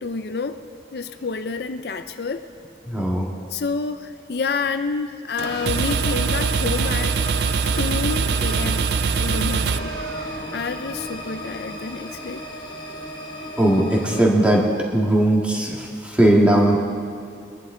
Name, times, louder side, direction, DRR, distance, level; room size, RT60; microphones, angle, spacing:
voice 1, 0.0-0.6 0.9-2.4 3.5-7.2 7.8-8.9 9.2-10.0 10.5-12.4, left 4 dB, 60° left, 9 dB, 0.5 m, -28 dB
voice 2, 2.9-3.3 13.6-14.6 14.9-16.8, right 1 dB, 5° right, -2 dB, 1.8 m, -18 dB
sound 1, 5.4-14.3, equal, 25° left, 1.4 m, -34 dB
sound 2, 5.4-10.6, right 6 dB, 65° right, 0.4 m, -23 dB
22.0 x 11.0 x 3.9 m, 2.4 s
head